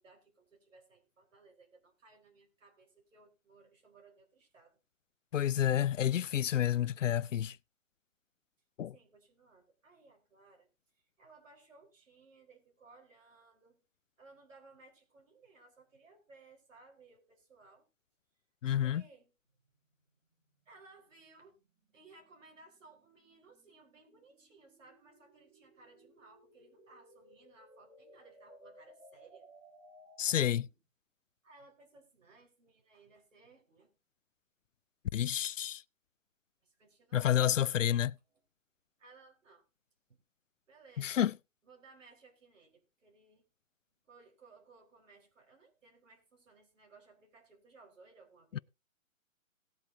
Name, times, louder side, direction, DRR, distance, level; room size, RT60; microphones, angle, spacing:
voice 1, 0.0-4.8 8.9-10.7 10.9-13.8 14.2-17.8 18.7-19.3 20.7-21.6 21.9-29.5 31.4-33.9 36.6-37.6 39.0-39.6 40.7-41.2 41.6-43.4 44.1-48.6, right 3 dB, 65° right, 4.2 m, -61 dB
voice 2, 5.3-7.6 8.8-8.9 18.6-19.0 30.2-30.7 35.1-35.8 37.1-38.2 41.0-41.3 48.5-48.6, left 10 dB, 65° left, 0.5 m, -29 dB
sound 1, 19.5-30.8, right 1 dB, 10° right, 3.1 m, -61 dB
19.0 x 8.2 x 2.7 m
hypercardioid pair, 170°, 41 cm